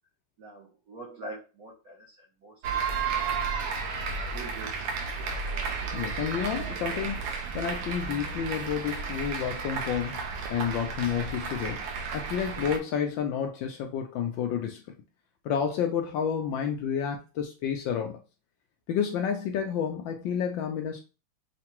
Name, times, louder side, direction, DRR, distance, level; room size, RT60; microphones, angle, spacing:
voice 1, 0.4-2.6 3.1-3.4 4.0-5.3, right 2 dB, 60° right, 1.0 m, -45 dB
sound 1, 2.6-12.8, right 5 dB, 85° right, 1.6 m, -33 dB
voice 2, 5.9-11.9 12.1-14.8 15.4-18.2 18.9-21.0, left 8 dB, 75° left, 1.1 m, -30 dB
5.7 x 2.2 x 2.9 m
omnidirectional pair, 2.4 m